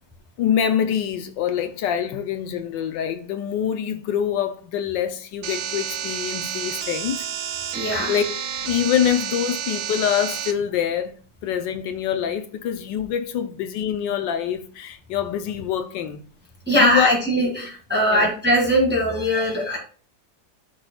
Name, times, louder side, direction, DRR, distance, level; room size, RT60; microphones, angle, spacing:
voice 1, 0.4-7.2 8.1-8.2 8.6-16.2 16.7-17.1 17.4-17.5 18.1-18.3, left 9 dB, 80° left, 1.3 m, -25 dB
sound 1, 5.4-10.5, right 8 dB, 75° right, 1.4 m, -30 dB
voice 2, 7.7-8.1 16.7-19.8, equal, 5° right, 2.0 m, -20 dB
11.5 x 4.7 x 2.3 m
omnidirectional pair, 2.0 m